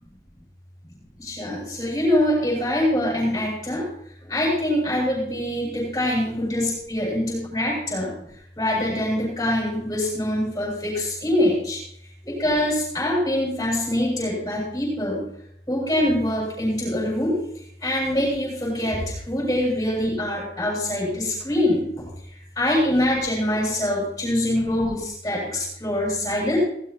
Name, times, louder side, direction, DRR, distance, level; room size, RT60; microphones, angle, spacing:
voice 1, 1.2-3.9 4.2-8.1 8.6-11.8 12.2-15.2 15.7-17.4 17.8-22.1 22.6-26.6, left 1 dB, 15° left, -5 dB, 7.6 m, -24 dB
17.5 x 15.5 x 3.0 m, 0.70 s
head